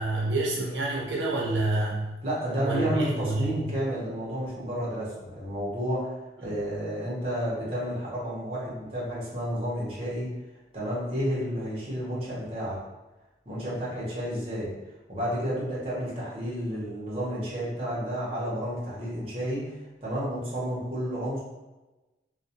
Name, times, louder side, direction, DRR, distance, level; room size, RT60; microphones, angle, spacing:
voice 1, 0.0-2.1 2.6-3.6 6.4-6.5, right 2 dB, 90° right, -4 dB, 0.8 m, -28 dB
voice 2, 2.2-6.1 6.4-10.3 10.7-12.8 13.5-14.7 15.1-19.7 20.0-21.4, equal, 30° right, -7 dB, 0.8 m, -31 dB
2.3 x 2.2 x 2.8 m, 1.1 s
head